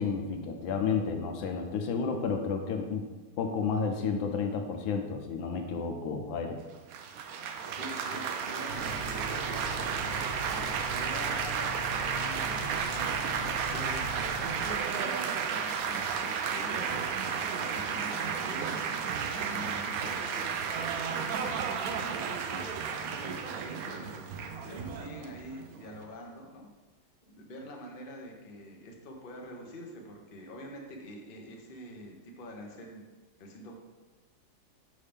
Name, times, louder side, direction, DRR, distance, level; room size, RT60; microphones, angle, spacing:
voice 1, 0.0-3.0 3.4-6.6, left 5 dB, 80° left, 4 dB, 1.5 m, -31 dB
Laughter / Applause / Chatter, 6.9-26.0, right 6 dB, 80° right, 0.7 m, -33 dB
voice 2, 7.8-18.9 19.4-26.7 27.2-33.0 33.4-33.7, equal, 40° left, 0 dB, 0.8 m, -46 dB
sound 1, 8.7-14.7, right 1 dB, 50° right, 1.0 m, -41 dB
6.3 x 5.7 x 3.4 m, 1.2 s
omnidirectional pair, 2.1 m